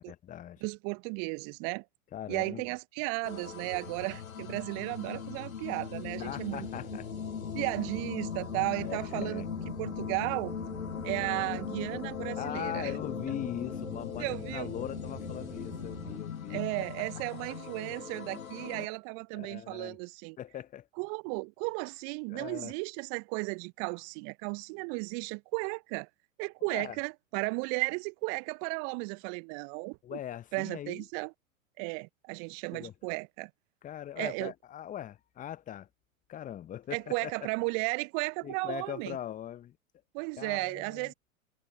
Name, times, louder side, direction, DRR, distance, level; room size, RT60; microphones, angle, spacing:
voice 1, 0.0-0.6 2.1-2.7 6.2-7.1 8.8-9.5 12.4-16.6 19.3-20.0 20.4-20.9 22.3-22.7 26.7-27.0 30.0-31.0 32.7-32.9 33.8-35.9 36.3-37.3 38.4-39.8 40.4-41.1, left 11 dB, 20° left, 1.0 m, -40 dB
voice 2, 0.6-1.8 2.3-6.7 7.5-9.4 9.8-10.5 11.0-12.9 14.2-14.7 16.5-20.4 21.0-26.1 26.4-30.2 30.5-31.3 31.8-33.5 34.2-34.5 36.9-39.2 40.1-41.1, right 37 dB, 35° right, 0.7 m, -34 dB
sound 1, 3.2-18.9, left 8 dB, 85° left, 0.8 m, -39 dB
sound 2, 6.0-16.2, right 8 dB, 20° right, 2.7 m, -48 dB
figure-of-eight pair, 100°, 40 cm